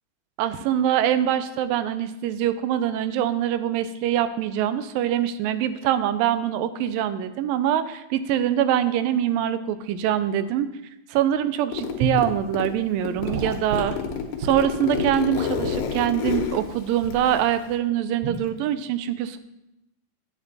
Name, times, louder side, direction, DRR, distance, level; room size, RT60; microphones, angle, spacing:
voice 1, 0.4-10.7 11.1-14.0 14.4-19.4, right 10 dB, 85° right, 12 dB, 2.3 m, -24 dB
Zipper (clothing), 11.7-12.7 13.1-17.8, left 7 dB, 90° left, 2.8 m, -29 dB
Gurgling / Sink (filling or washing) / Liquid, 12.0-12.3 13.2-15.9 16.3-16.5 17.0-17.3 18.2-18.5, right 3 dB, 65° right, 1.7 m, -31 dB
9.5 x 8.9 x 4.1 m, 0.89 s
omnidirectional pair, 3.9 m